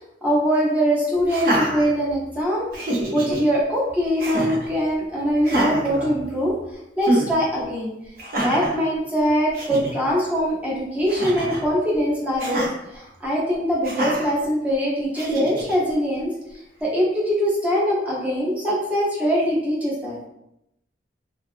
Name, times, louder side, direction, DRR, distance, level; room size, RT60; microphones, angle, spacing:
voice 1, 0.2-2.7 3.1-6.5 7.0-7.9 8.4-12.7 12.9-16.3 16.8-20.2, equal, 10° right, -5 dB, 0.6 m, -22 dB
Laughter, 1.2-2.4 2.7-3.4 4.2-4.7 5.4-6.6 7.0-7.3 8.2-8.8 9.3-9.4 9.5-9.9 11.1-11.7 12.4-12.7 13.8-14.3 15.1-15.7, right 1 dB, 55° right, 0.6 m, -26 dB
2.5 x 2.3 x 2.4 m, 0.83 s
head